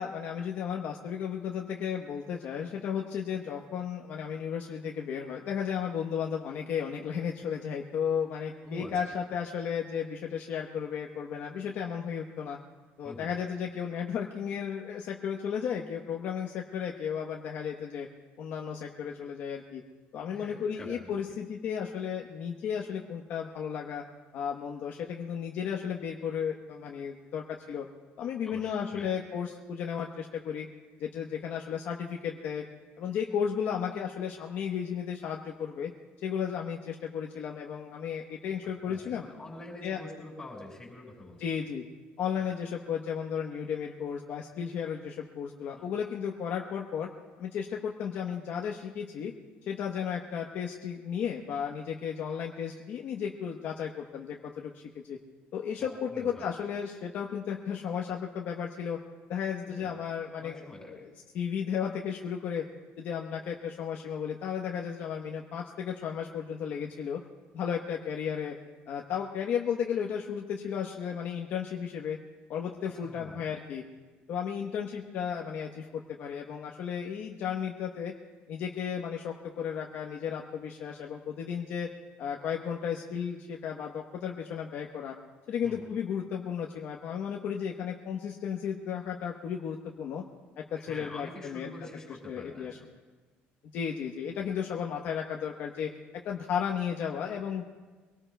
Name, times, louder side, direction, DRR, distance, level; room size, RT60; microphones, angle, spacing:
voice 1, 0.0-12.6 13.0-18.1 18.4-19.8 20.1-24.0 24.3-27.9 28.2-30.7 31.0-32.6 33.0-35.9 36.2-39.2 39.8-40.0 41.4-41.8 42.2-47.1 47.4-49.3 49.6-55.2 55.5-59.0 59.3-60.6 60.9-61.0 61.3-62.6 63.0-67.2 67.5-68.5 68.9-72.2 72.5-73.8 74.3-78.1 78.5-81.9 82.2-85.1 85.5-90.2 90.6-91.7 92.1-92.8 93.7-95.9 96.2-97.7, left 7 dB, 50° left, 0 dB, 0.9 m, -34 dB
voice 2, 8.6-9.0 13.0-13.3 20.3-21.1 28.4-29.1 38.9-41.4 42.4-42.5 45.7-45.9 55.8-56.5 59.7-59.9 60.4-61.1 72.8-73.5 85.6-85.8 90.8-92.7, left 2 dB, 15° left, -3 dB, 5.2 m, -45 dB
24.5 x 18.5 x 2.2 m, 1.3 s
cardioid pair, 160°, 4 cm